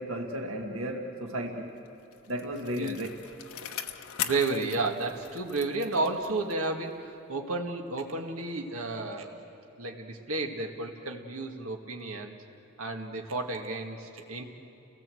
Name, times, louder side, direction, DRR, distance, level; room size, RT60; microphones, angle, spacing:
voice 1, 0.0-1.7 2.3-3.1, equal, 70° right, 2 dB, 1.7 m, -34 dB
Bicycle, 1.9-6.8 7.1-7.2, left 9 dB, 90° left, 1.0 m, -40 dB
voice 2, 4.2-9.3 9.8-12.4 12.8-14.4, right 3 dB, 90° right, 2 dB, 1.9 m, -32 dB
30.0 x 18.5 x 7.8 m, 2.9 s
head